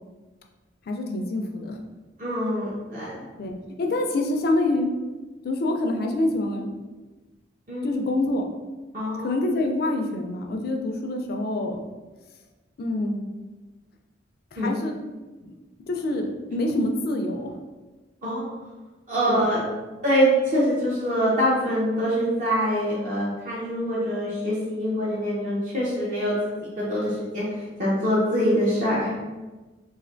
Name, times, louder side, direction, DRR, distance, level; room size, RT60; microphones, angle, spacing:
voice 1, 0.9-1.8 3.4-4.9 5.4-6.7 7.8-8.5 9.2-11.9 12.8-13.2 14.5-14.9 15.4-15.5 15.9-17.5 19.3-19.4, left 2 dB, 55° left, 3 dB, 0.4 m, -26 dB
voice 2, 2.2-3.1 7.7-7.9 8.9-9.3 14.6-14.7 18.2-18.5 19.1-19.6 20.0-29.1, equal, 45° right, -8 dB, 0.7 m, -24 dB
3.2 x 2.4 x 2.5 m, 1.2 s
head